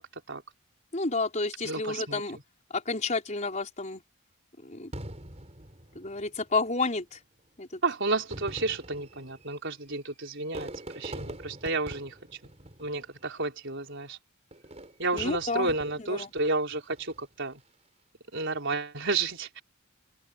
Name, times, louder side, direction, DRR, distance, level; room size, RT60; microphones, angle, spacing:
voice 1, 0.9-2.4 2.7-4.0 4.6-4.9 5.9-7.2 7.6-7.8 15.1-15.7 16.1-16.3, left 3 dB, 35° left, 5.0 m, -30 dB
voice 2, 1.6-2.4 7.8-12.1 12.8-14.2 15.0-17.6 18.3-19.6, right 3 dB, 55° right, 4.7 m, -31 dB
Fireworks, 4.9-6.5 7.4-7.5 8.2-13.4 14.5-16.3 16.8-17.3, right 1 dB, 30° right, 5.1 m, -44 dB
open air
head